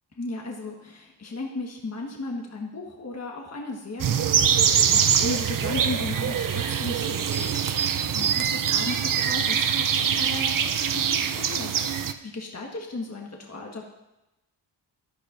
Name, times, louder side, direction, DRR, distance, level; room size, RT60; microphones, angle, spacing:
voice 1, 0.2-13.8, left 2 dB, 35° left, 0 dB, 1.4 m, -36 dB
sound 1, 4.0-12.1, right 8 dB, 50° right, 0.6 m, -24 dB
14.0 x 10.0 x 2.6 m, 0.96 s
cardioid pair, 70°, 44 cm